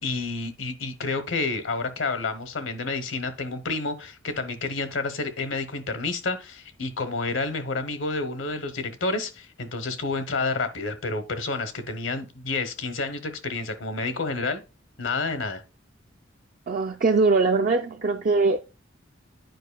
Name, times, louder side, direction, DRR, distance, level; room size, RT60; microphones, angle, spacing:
voice 1, 0.0-14.6 15.0-15.6, left 3 dB, 75° left, 0.9 m, -29 dB
voice 2, 16.7-18.6, right 3 dB, 45° right, 0.4 m, -21 dB
9.2 x 4.9 x 2.3 m
head